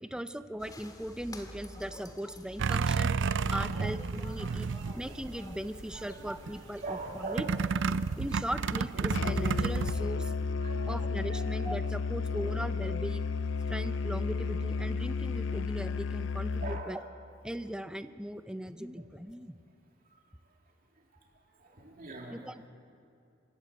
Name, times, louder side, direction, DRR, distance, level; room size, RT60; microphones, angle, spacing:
voice 1, 0.0-3.1 3.5-4.7 4.9-7.5 8.2-10.3 10.8-13.2 13.7-17.0 17.4-19.6 22.3-22.7, equal, 5° right, 11 dB, 0.7 m, -39 dB
sound 1, 0.6-10.2, equal, 20° left, 2.0 m, -49 dB
sound 2, 2.6-5.6 5.9-6.5 7.4-9.9, right 5 dB, 65° right, 0.5 m, -31 dB
voice 2, 3.4-3.8 4.3-5.1 5.9-6.3 6.8-7.5 8.2-8.3 10.2-11.7 13.6-13.7 16.6-17.0 18.9-19.0 20.1-20.2 21.1-21.2 21.5-22.4, right 3 dB, 45° right, 0 dB, 2.9 m, -43 dB
Musical instrument, 9.1-16.9, left 4 dB, 65° left, 0.5 m, -32 dB
27.5 x 13.5 x 8.4 m, 2.6 s
head